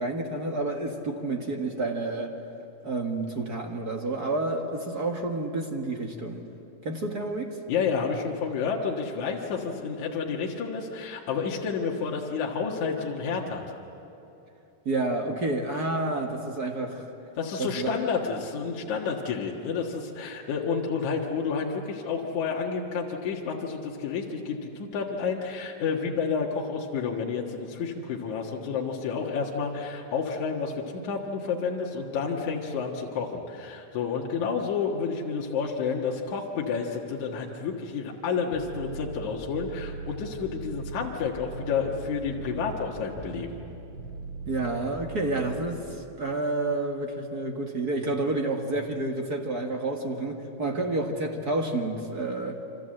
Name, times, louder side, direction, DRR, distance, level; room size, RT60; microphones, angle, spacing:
voice 1, 0.0-2.3 2.8-6.4 6.8-7.6 14.8-17.1 17.6-18.0 44.5-52.6, right 2 dB, 40° right, 2 dB, 1.6 m, -29 dB
voice 2, 7.7-13.6 17.4-43.6, left 5 dB, 70° left, -1 dB, 3.0 m, -30 dB
sound 1, 38.5-45.5, right 4 dB, 70° right, 5.0 m, -39 dB
27.5 x 26.0 x 7.7 m, 2.9 s
omnidirectional pair, 3.6 m